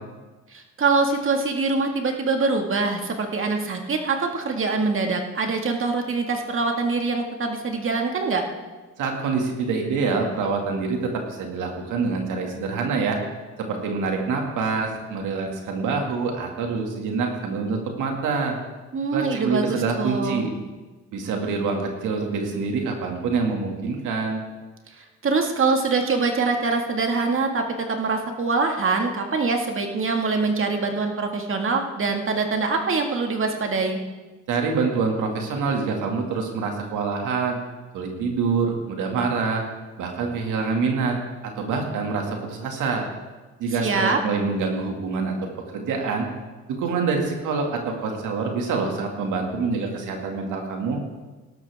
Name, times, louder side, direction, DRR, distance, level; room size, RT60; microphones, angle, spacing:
voice 1, 0.5-8.4 18.9-20.5 25.0-34.0 43.8-44.2, right 4 dB, 45° right, 3 dB, 2.0 m, -24 dB
voice 2, 9.0-13.2 13.6-18.5 19.1-20.5 21.1-24.4 34.5-37.6 37.9-39.6 40.0-41.2 41.6-43.0 43.6-46.3 46.7-51.0, right 4 dB, 85° right, 2 dB, 2.3 m, -26 dB
18.0 x 12.0 x 3.6 m, 1.2 s
cardioid pair, 90°, 30 cm